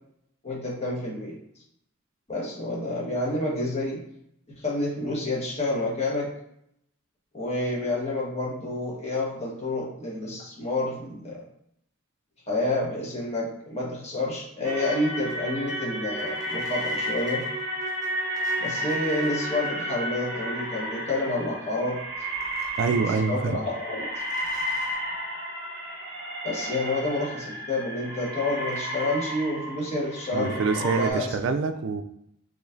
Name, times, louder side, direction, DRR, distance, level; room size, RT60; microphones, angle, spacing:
voice 1, 0.4-1.4 2.3-4.0 4.6-6.3 7.3-11.4 12.5-17.4 18.6-22.0 22.9-24.1 26.4-31.3, left 2 dB, 30° left, -5 dB, 1.3 m, -29 dB
sound 1, 14.6-31.1, equal, 20° right, 1.1 m, -32 dB
voice 2, 22.8-23.6 30.3-32.0, right 4 dB, 60° right, 8 dB, 0.3 m, -26 dB
4.9 x 3.2 x 2.6 m, 0.74 s
head